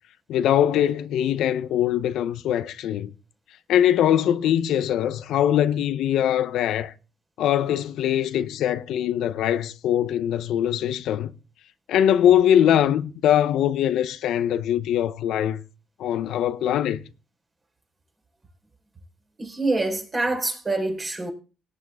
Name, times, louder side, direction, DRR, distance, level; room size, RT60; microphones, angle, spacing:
voice 1, 0.3-3.1 3.7-6.9 7.4-11.3 11.9-15.6 16.0-17.0, left 10 dB, 80° left, 0.6 m, -22 dB
voice 2, 19.4-21.3, right 2 dB, 30° right, 4.0 m, -26 dB
18.0 x 9.0 x 3.5 m
cardioid pair, 90°, 0 cm